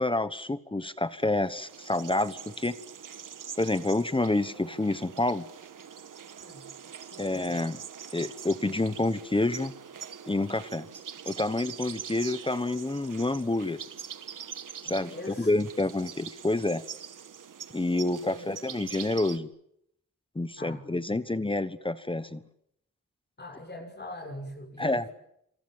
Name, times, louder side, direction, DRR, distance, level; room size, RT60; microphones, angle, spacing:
voice 1, 0.0-2.7 3.6-5.5 7.2-7.8 8.1-9.7 10.3-10.9 11.3-13.8 14.8-16.8 17.7-19.5 20.3-22.4 24.8-25.0, left 2 dB, 15° left, 13 dB, 1.1 m, -28 dB
sound 1, 1.2-19.4, right 7 dB, 90° right, 1.6 m, -44 dB
voice 2, 14.8-15.5 18.2-18.6 20.6-20.8 21.1-21.2 23.4-25.1, left 1 dB, 35° left, 4 dB, 6.0 m, -42 dB
27.5 x 27.0 x 7.4 m, 0.75 s
wide cardioid pair, 150°, 31 cm